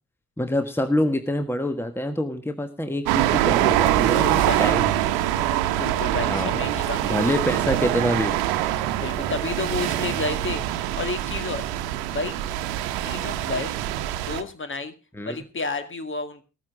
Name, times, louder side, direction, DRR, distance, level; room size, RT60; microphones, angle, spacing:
voice 1, 0.4-5.1 6.3-6.6 7.1-8.4 13.0-13.3 15.1-15.4, left 1 dB, 5° left, 8 dB, 1.5 m, -26 dB
sound 1, 3.1-14.4, right 13 dB, 65° right, 1.2 m, -24 dB
voice 2, 4.4-4.7 5.8-7.2 9.0-11.7 12.1-12.3 13.0-13.8 14.3-14.9 15.3-16.4, left 3 dB, 30° left, 9 dB, 2.1 m, -31 dB
15.0 x 14.0 x 3.7 m, 0.31 s
figure-of-eight pair, 45°, 39 cm